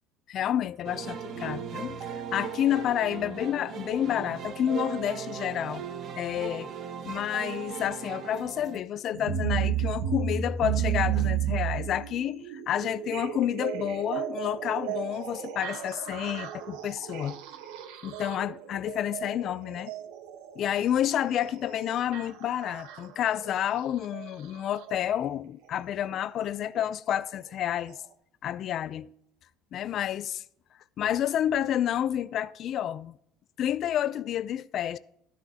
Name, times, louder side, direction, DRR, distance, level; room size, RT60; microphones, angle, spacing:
voice 1, 0.3-5.8 6.2-6.7 7.0-17.4 18.0-19.9 20.6-28.0 28.4-29.1 29.7-30.4 31.0-33.1 33.6-35.0, left 10 dB, 50° left, 0.5 m, -29 dB
sound 1, 0.8-8.8, right 7 dB, 55° right, 1.1 m, -38 dB
sound 2, 9.1-25.0 26.2-26.3 27.1-27.2 27.9-28.0, right 9 dB, 85° right, 1.2 m, -33 dB
12.0 x 11.5 x 2.9 m
supercardioid pair, 110°, 0 cm